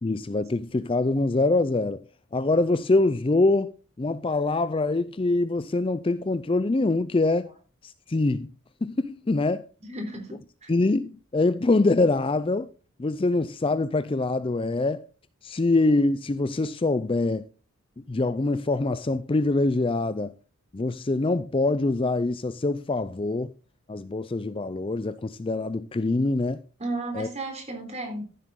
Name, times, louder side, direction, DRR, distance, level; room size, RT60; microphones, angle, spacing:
voice 1, 0.0-2.0 2.3-7.5 7.8-8.5 8.8-9.7 10.7-12.7 13.0-15.1 15.4-17.5 18.1-20.3 20.7-23.5 23.9-26.6 27.2-27.3, left 2 dB, 25° left, 0.4 m, -24 dB
voice 2, 9.8-10.7 26.8-28.2, right 2 dB, 30° right, 3.8 m, -34 dB
14.5 x 7.6 x 3.8 m
head